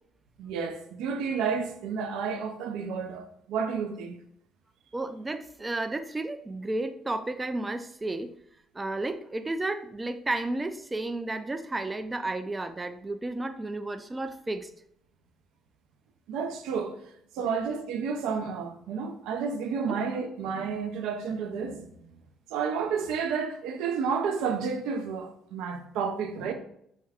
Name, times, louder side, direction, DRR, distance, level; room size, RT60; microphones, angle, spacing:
voice 1, 0.4-4.2 16.3-16.9 17.3-21.9 22.5-26.5, right 6 dB, 80° right, 0.5 m, -31 dB
voice 2, 4.9-8.3 8.7-14.7 17.4-17.5 19.9-20.0, right 2 dB, 20° right, 0.4 m, -32 dB
4.4 x 2.3 x 3.5 m
supercardioid pair, 65°, 0 cm